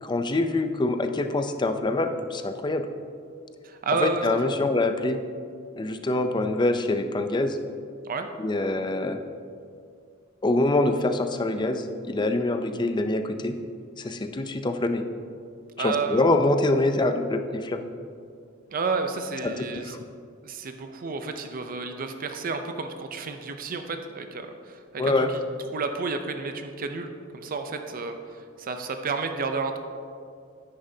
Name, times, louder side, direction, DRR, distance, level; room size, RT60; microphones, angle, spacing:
voice 1, 0.0-2.9 4.0-5.2 5.8-7.6 8.4-9.2 10.4-13.6 14.0-15.0 15.8-17.8 19.4-20.0 25.0-25.3, left 2 dB, 20° left, 8 dB, 0.5 m, -25 dB
voice 2, 3.6-4.6 8.0-8.3 15.8-16.3 18.7-20.0 20.4-25.2 25.7-29.8, right 4 dB, 45° right, 6 dB, 0.5 m, -31 dB
9.7 x 9.7 x 2.7 m, 2.3 s
head